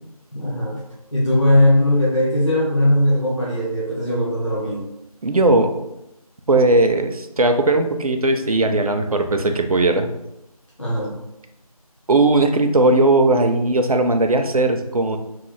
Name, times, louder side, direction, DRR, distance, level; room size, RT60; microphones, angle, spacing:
voice 1, 0.3-0.8 1.1-4.8 10.8-11.1, left 1 dB, 50° left, -6 dB, 0.9 m, -19 dB
voice 2, 5.2-5.7 6.5-10.1 12.1-15.2, right 2 dB, 65° right, 6 dB, 0.4 m, -18 dB
3.0 x 2.1 x 3.2 m, 0.88 s
figure-of-eight pair, 175°, 20 cm